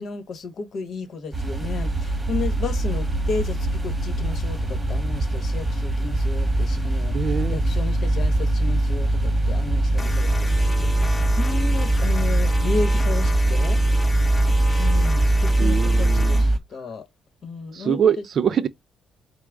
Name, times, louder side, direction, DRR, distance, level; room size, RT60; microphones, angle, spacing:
voice 1, 0.0-13.8 14.8-17.1 17.4-18.0, left 4 dB, 60° left, 1.1 m, -33 dB
sound 1, 1.3-16.6, right 1 dB, 15° right, 1.2 m, -21 dB
voice 2, 7.1-7.6 15.6-16.4 17.7-18.7, right 8 dB, 55° right, 0.5 m, -23 dB
sound 2, 10.0-16.5, left 2 dB, 15° left, 0.7 m, -35 dB
4.7 x 2.1 x 3.5 m
cardioid pair, 90°, 0 cm